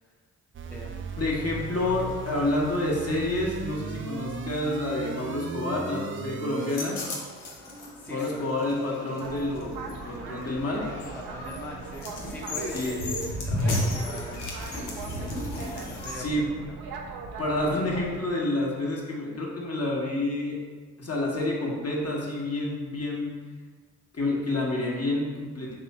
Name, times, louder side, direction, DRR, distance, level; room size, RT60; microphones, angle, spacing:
sound 1, 0.5-6.7, right 5 dB, 35° right, 0.4 m, -36 dB
voice 1, 0.7-1.2 2.4-2.5 7.9-8.5 11.0-12.8 13.4-15.4 15.8-16.7, left 1 dB, 5° left, -3 dB, 0.6 m, -42 dB
voice 2, 1.2-7.0 8.0-10.8 12.7-13.0 16.1-16.5 17.4-20.6 21.0-23.3 24.1-25.7, left 2 dB, 40° left, -3 dB, 1.2 m, -29 dB
sound 2, 6.6-16.3, left 1 dB, 85° left, 0.8 m, -34 dB
Boat Water vehicle, 9.2-18.2, right 4 dB, 80° right, 0.6 m, -40 dB
3.4 x 3.0 x 4.1 m, 1.5 s
supercardioid pair, 50°, 38 cm